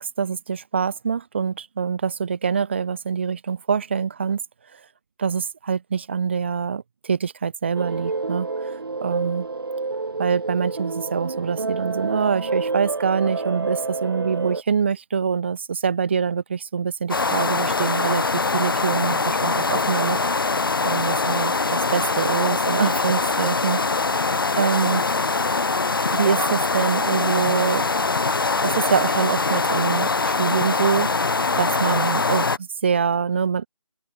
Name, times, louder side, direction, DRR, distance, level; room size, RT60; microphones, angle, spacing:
voice 1, 0.0-4.4 5.2-9.5 10.2-20.2 20.8-23.8 24.5-25.0 26.1-27.9 28.6-31.1 31.5-33.7, right 6 dB, 20° right, 1.9 m, -25 dB
sound 1, 7.7-14.6, right 3 dB, 40° right, 3.0 m, -28 dB
sound 2, 17.1-32.6, left 4 dB, 40° left, 2.5 m, -23 dB
figure-of-eight pair, 170°, 18 cm